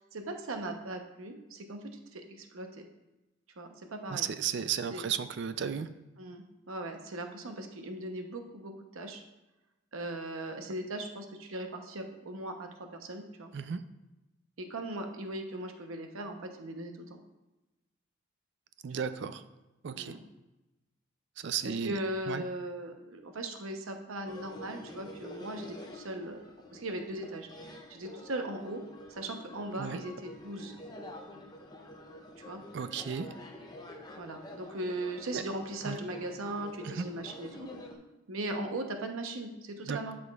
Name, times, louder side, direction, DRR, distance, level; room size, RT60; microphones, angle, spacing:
voice 1, 0.1-1.8 2.1-2.8 3.6-4.3 4.9-5.1 6.2-9.2 9.9-13.5 14.6-17.2 18.9-19.0 19.9-20.2 21.6-26.4 26.7-27.5 27.9-28.8 29.1-30.8 32.4-32.6 34.2-37.7 38.3-40.2, right 1 dB, 85° right, 5 dB, 0.8 m, -39 dB
voice 2, 4.1-5.9 13.5-13.8 18.8-19.4 19.8-20.1 21.4-22.0 22.3-22.4 29.8-30.0 32.7-33.3 35.3-35.4 35.8-36.0 36.8-37.1 39.9-40.0, right 7 dB, 55° right, 11 dB, 0.4 m, -34 dB
sound 1, 24.3-37.9, left 1 dB, 20° left, 0.6 m, -48 dB
12.0 x 5.1 x 2.4 m, 1.0 s
head